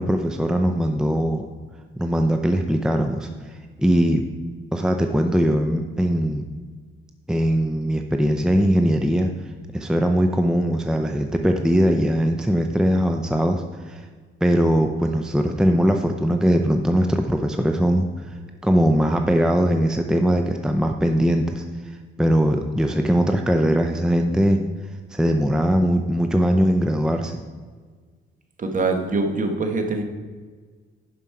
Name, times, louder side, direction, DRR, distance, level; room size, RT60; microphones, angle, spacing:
voice 1, 0.0-1.4 2.0-3.3 3.8-4.2 4.7-6.5 7.3-9.3 9.7-14.0 14.4-18.1 18.6-21.6 22.2-24.6 25.1-27.4, equal, 5° right, 5 dB, 0.5 m, -20 dB
voice 2, 28.6-30.0, right 3 dB, 40° right, 5 dB, 1.3 m, -23 dB
11.5 x 5.2 x 4.7 m, 1.5 s
cardioid pair, 105°, 21 cm